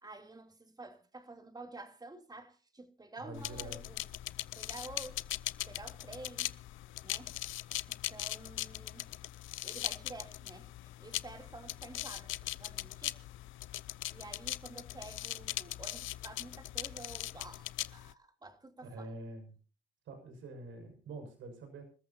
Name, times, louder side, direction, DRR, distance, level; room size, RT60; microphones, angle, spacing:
voice 1, 0.0-4.0 4.6-5.2 5.7-6.5 7.0-7.4 7.9-9.1 9.6-12.3 12.6-13.2 14.1-19.1, right 2 dB, 20° right, 3.0 m, -50 dB
voice 2, 3.2-3.8 18.8-19.5 20.1-21.8, right 2 dB, 75° right, 6.5 m, -46 dB
sound 1, 3.4-18.1, left 15 dB, 85° left, 0.7 m, -40 dB
27.0 x 14.0 x 2.9 m
cardioid pair, 90°, 20 cm